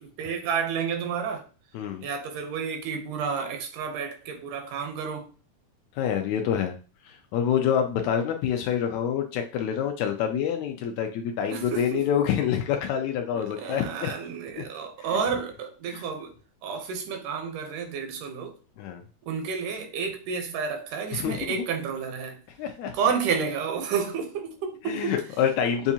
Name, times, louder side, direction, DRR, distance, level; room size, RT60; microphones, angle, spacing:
voice 1, 0.2-1.5 2.0-5.3 11.5-12.1 13.3-16.3 16.6-18.6 19.3-22.4 22.9-25.2, right 6 dB, 85° right, 2.4 m, -30 dB
voice 2, 6.0-6.8 7.0-14.1 14.6-14.7 15.0-15.2 15.9-16.0 18.8-19.0 21.1-21.6 22.6-22.9 24.9-25.9, left 8 dB, 80° left, 1.8 m, -27 dB
7.0 x 2.4 x 2.7 m
omnidirectional pair, 3.5 m